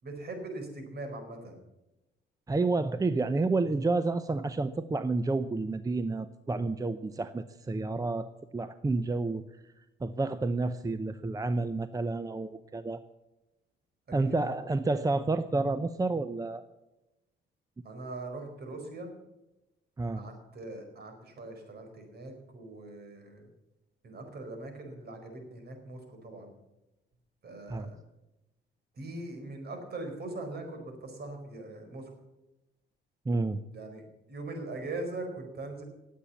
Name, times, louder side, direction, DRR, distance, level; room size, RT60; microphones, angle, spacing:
voice 1, 0.0-1.6 14.2-14.6 17.8-19.1 20.2-23.5 24.0-26.5 27.4-28.0 28.9-32.1 33.7-35.8, right 2 dB, 55° right, 5 dB, 4.6 m, -41 dB
voice 2, 2.5-13.0 14.1-16.6 20.0-20.2 27.7-27.9 33.3-33.6, right 3 dB, 15° right, 12 dB, 0.7 m, -30 dB
18.0 x 8.5 x 7.2 m, 0.97 s
cardioid pair, 90°, 20 cm